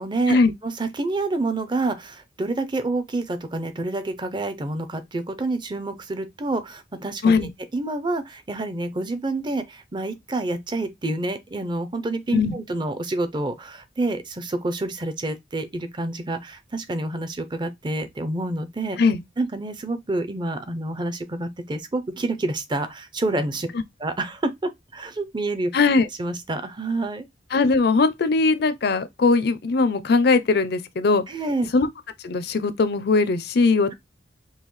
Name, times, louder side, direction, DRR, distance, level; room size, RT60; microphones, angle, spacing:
voice 1, 0.0-7.3 7.7-19.0 19.4-23.7 24.0-25.7 26.2-27.2 31.3-31.7, right 2 dB, 25° right, 0.6 m, -28 dB
voice 2, 25.7-26.1 27.5-31.2 31.7-31.9 32.2-33.9, left 4 dB, 55° left, 0.5 m, -20 dB
5.5 x 2.3 x 3.1 m
head